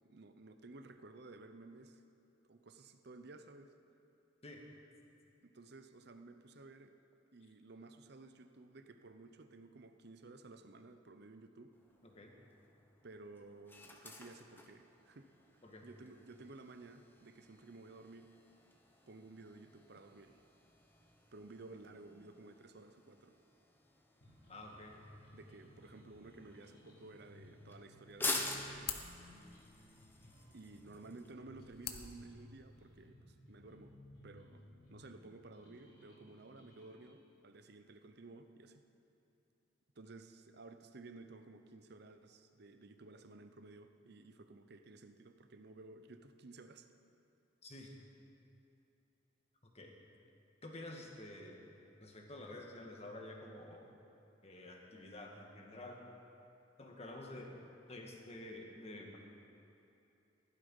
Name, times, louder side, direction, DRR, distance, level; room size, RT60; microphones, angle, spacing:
voice 1, 0.1-2.0 2.5-3.7 5.4-7.0 7.3-11.7 13.0-15.3 15.8-18.3 19.1-20.4 21.3-23.4 25.3-29.1 30.5-34.0 34.2-34.6 34.9-38.8 40.0-46.9, right 3 dB, 60° right, 8 dB, 0.8 m, -55 dB
sound 1, 11.7-31.3, left 2 dB, 10° left, 1.0 m, -48 dB
voice 2, 12.0-12.4 15.6-15.9 24.5-25.0 47.6-48.0 49.6-49.9 50.6-51.6 52.0-53.9 54.4-56.1 56.8-57.6 57.9-59.2, left 1 dB, 35° left, 1 dB, 1.7 m, -50 dB
sound 2, 24.2-37.2, left 1 dB, 90° left, 3.7 m, -59 dB
sound 3, 28.1-33.1, left 9 dB, 55° left, 0.9 m, -50 dB
15.0 x 12.0 x 5.5 m, 2.8 s
head